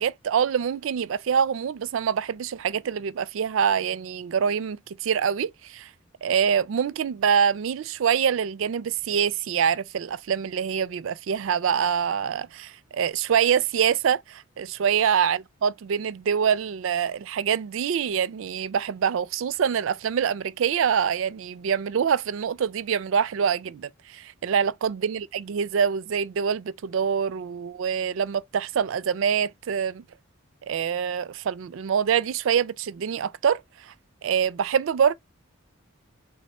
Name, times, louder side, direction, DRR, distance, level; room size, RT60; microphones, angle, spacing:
voice 1, 0.0-5.9 6.2-30.0 30.7-33.9 34.2-35.1, right 7 dB, 70° right, 0.3 m, -25 dB
4.2 x 3.4 x 3.2 m
head